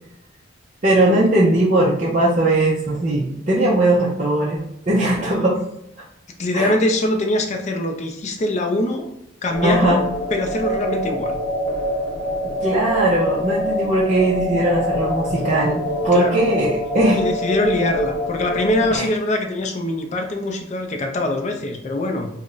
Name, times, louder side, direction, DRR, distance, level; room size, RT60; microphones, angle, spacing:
voice 1, 0.8-5.6 6.5-6.7 9.6-10.0 12.6-17.2 18.9-19.1, right 1 dB, 35° right, -6 dB, 0.4 m, -19 dB
voice 2, 5.0-5.5 6.4-9.1 9.4-10.0 10.3-11.4 16.1-16.5 17.1-22.3, left 1 dB, 35° left, 4 dB, 0.4 m, -23 dB
sound 1, 9.5-19.0, equal, 10° left, 1.1 m, -24 dB
2.4 x 2.1 x 3.7 m, 0.79 s
head